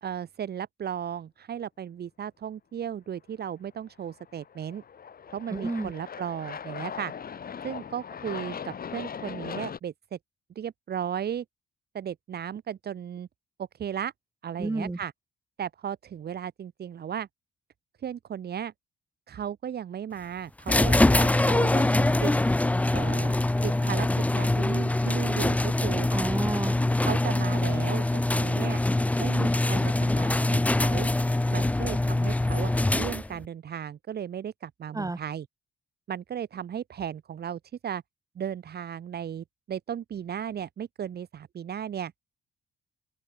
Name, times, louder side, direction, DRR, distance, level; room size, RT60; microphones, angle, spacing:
voice 1, 0.0-4.8 5.3-7.1 7.6-10.2 10.5-11.4 11.9-13.3 13.6-14.1 14.4-15.1 15.6-17.3 18.0-18.7 19.3-22.3 22.9-23.4 23.6-26.1 27.0-28.8 29.2-31.1 31.5-35.5 36.1-38.0 38.3-42.1, right 9 dB, 55° right, 1.7 m, -35 dB
Aircraft, 4.1-9.8, left 7 dB, 50° left, 3.4 m, -39 dB
voice 2, 5.5-5.9 14.6-15.0 26.1-26.8 34.9-35.2, right 2 dB, 15° right, 6.2 m, -30 dB
sound 1, 20.7-33.5, left 2 dB, 5° left, 0.4 m, -24 dB
open air
cardioid pair, 90°, 20 cm